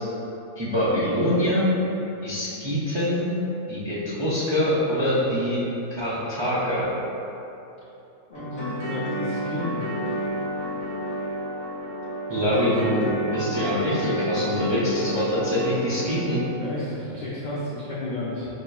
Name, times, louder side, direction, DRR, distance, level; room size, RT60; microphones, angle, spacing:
voice 1, 0.6-1.6 2.2-3.2 3.7-5.6 6.0-6.9 12.3-16.4, equal, 45° right, -9 dB, 0.3 m, -24 dB
voice 2, 8.3-9.8 16.6-18.5, left 1 dB, 65° left, -7 dB, 0.4 m, -32 dB
sound 1, 8.3-16.3, equal, 15° left, 1.0 m, -30 dB
5.5 x 2.9 x 2.3 m, 2.9 s
omnidirectional pair, 1.4 m